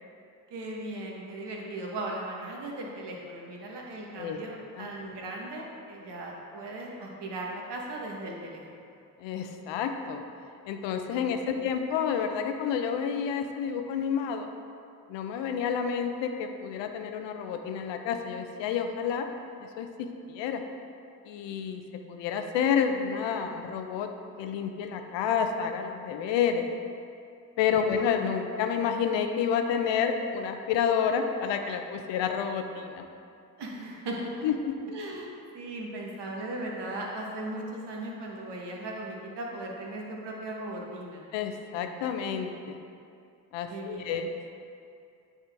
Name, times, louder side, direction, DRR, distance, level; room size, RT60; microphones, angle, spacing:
voice 1, 0.5-8.9 11.2-11.7 27.6-28.1 33.6-34.4 34.9-41.2 43.7-44.2, right 1 dB, 65° right, -1 dB, 1.3 m, -38 dB
voice 2, 9.2-10.2 10.6-14.5 15.1-19.3 19.6-19.9 20.3-20.6 21.3-21.8 22.1-24.1 24.4-26.7 27.6-33.0 34.4-34.7 41.3-42.8 43.5-44.3, left 7 dB, 75° left, 6 dB, 0.7 m, -29 dB
8.9 x 3.7 x 3.5 m, 2.5 s
hypercardioid pair, 40°, 45 cm